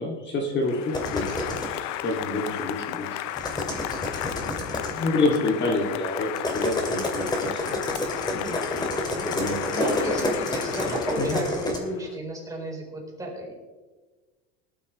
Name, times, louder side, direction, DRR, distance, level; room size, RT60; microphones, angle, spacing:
voice 1, 0.0-3.2 4.3-4.4 4.9-7.8 8.3-10.2 10.9-11.4, left 2 dB, 35° left, 0 dB, 2.5 m, -29 dB
Applause, 0.6-12.1, left 12 dB, 55° left, 0.8 m, -34 dB
sound 1, 0.9-1.8 3.3-5.0 6.4-11.8, left 1 dB, 10° left, 2.4 m, -29 dB
voice 2, 4.4-5.1 9.7-13.5, right 1 dB, 10° right, -2 dB, 4.2 m, -33 dB
18.5 x 12.0 x 3.2 m, 1.3 s
supercardioid pair, 130°, 33 cm